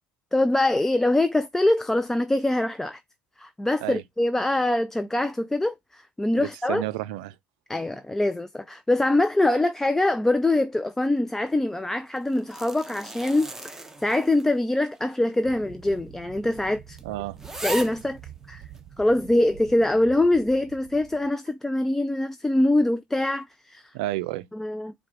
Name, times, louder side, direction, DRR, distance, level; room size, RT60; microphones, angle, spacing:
voice 1, 0.3-3.0 3.4-6.8 7.7-17.0 17.6-18.2 18.5-18.6 19.0-23.8 24.5-24.9, left 1 dB, 10° left, 0.3 m, -24 dB
voice 2, 6.4-7.3 17.0-17.4 23.9-24.5, right 17 dB, 80° right, 0.4 m, -31 dB
sound 1, 12.2-14.6 15.0-15.1 15.9-16.0 16.4-16.5 17.0-17.1 17.4-18.1 18.8-18.9, right 2 dB, 10° right, 0.8 m, -37 dB
sound 2, 15.4-21.3, right 9 dB, 45° right, 1.0 m, -47 dB
4.7 x 2.2 x 4.5 m
supercardioid pair, 80°, 4 cm